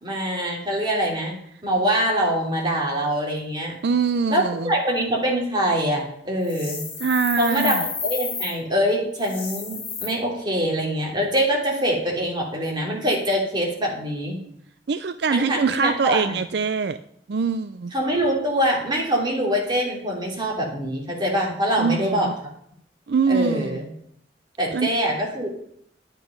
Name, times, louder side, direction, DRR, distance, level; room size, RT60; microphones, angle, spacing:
voice 1, 0.0-3.7 4.3-6.8 7.4-14.4 15.3-16.4 17.9-22.3 23.3-23.9 24.6-25.6, equal, 25° right, -2 dB, 3.1 m, -24 dB
voice 2, 3.8-4.7 7.0-7.8 14.9-17.0 17.3-17.9 21.8-22.3 23.1-23.8 24.7-24.9, right 5 dB, 70° right, 12 dB, 0.5 m, -23 dB
sound 1, 6.4-8.5 9.2-10.1, left 5 dB, 30° left, 3.1 m, -31 dB
10.5 x 9.1 x 5.3 m, 0.70 s
head